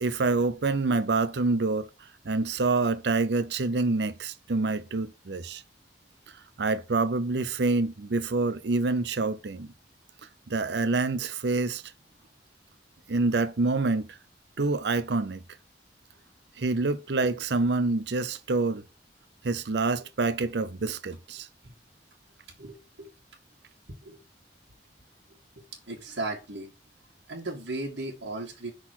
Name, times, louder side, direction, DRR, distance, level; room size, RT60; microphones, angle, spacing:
voice 1, 0.0-1.9 2.3-5.6 6.6-9.7 10.5-11.8 13.1-14.1 14.6-15.4 16.6-18.8 19.4-21.5, right 3 dB, 70° right, 0.6 m, -26 dB
voice 2, 22.6-23.1 24.0-24.2 25.6-26.7 27.3-28.7, right 2 dB, 85° right, 1.9 m, -36 dB
6.2 x 4.0 x 6.0 m
head